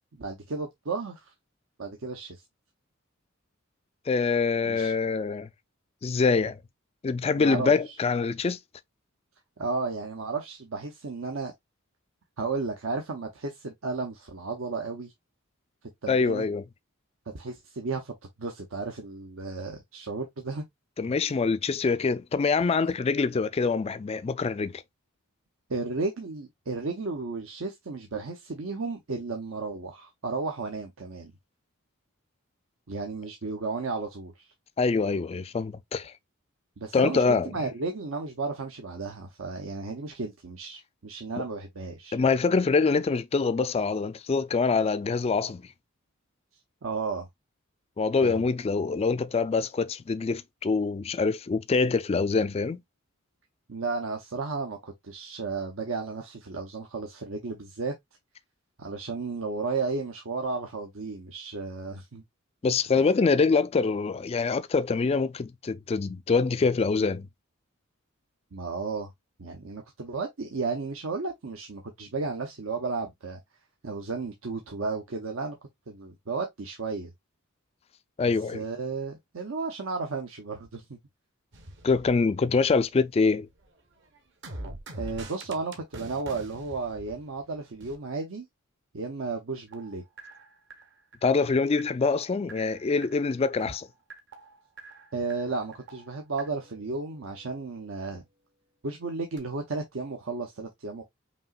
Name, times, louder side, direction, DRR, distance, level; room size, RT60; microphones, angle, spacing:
voice 1, 0.1-1.3 1.8-2.4 4.7-4.9 7.3-7.9 9.6-11.5 12.4-15.1 16.0-16.5 17.3-18.1 18.4-20.6 25.7-31.3 32.9-34.5 36.8-42.2 46.8-47.3 48.2-48.5 53.7-57.9 58.8-62.2 68.5-69.1 69.4-73.4 73.8-75.6 75.9-77.1 78.5-81.0 85.0-88.5 88.9-90.0 95.1-98.2 98.8-101.0, right 4 dB, 75° right, 0.8 m, -33 dB
voice 2, 4.1-5.5 6.0-6.6 7.0-8.6 16.1-16.6 21.0-24.8 34.8-36.1 36.9-37.5 41.4-41.5 42.1-45.6 48.0-52.8 62.6-67.3 78.2-78.6 81.8-83.5 91.2-93.9, left 4 dB, 30° left, 0.3 m, -25 dB
sound 1, 81.5-83.0 83.3-88.0 89.7-97.6 99.4-99.5, right 2 dB, 55° right, 1.1 m, -45 dB
5.3 x 2.9 x 2.3 m
head